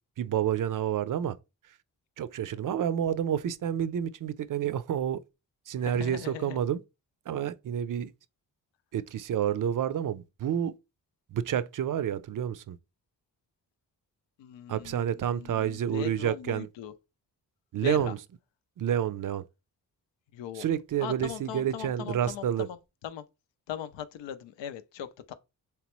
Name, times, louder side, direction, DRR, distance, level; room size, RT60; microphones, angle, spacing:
voice 1, 0.2-1.4 2.2-5.2 5.7-6.8 7.3-8.1 8.9-10.7 11.3-12.8 14.7-16.7 17.7-18.2 18.8-19.4 20.5-22.7, right 9 dB, 50° right, 0.4 m, -29 dB
voice 2, 5.8-6.6 14.4-16.9 17.8-18.1 20.3-20.6 21.0-22.8 23.0-23.2 23.7-25.3, left 10 dB, 85° left, 0.6 m, -39 dB
3.3 x 3.0 x 3.0 m
supercardioid pair, 45°, 43 cm